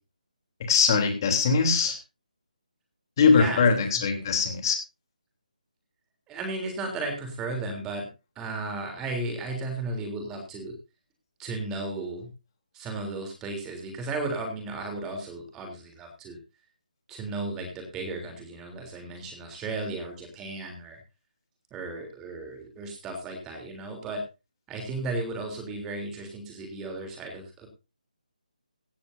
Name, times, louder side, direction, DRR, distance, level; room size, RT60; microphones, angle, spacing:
voice 1, 0.7-2.0 3.2-4.8, left 5 dB, 30° left, 5 dB, 3.2 m, -21 dB
voice 2, 3.3-4.3 6.3-8.1 8.4-10.7 11.4-12.3 12.7-16.4 17.1-21.0 21.7-24.2 24.7-27.7, right 2 dB, 10° right, 4 dB, 3.4 m, -35 dB
16.5 x 14.0 x 2.7 m, 0.28 s
hypercardioid pair, 170°, 5 cm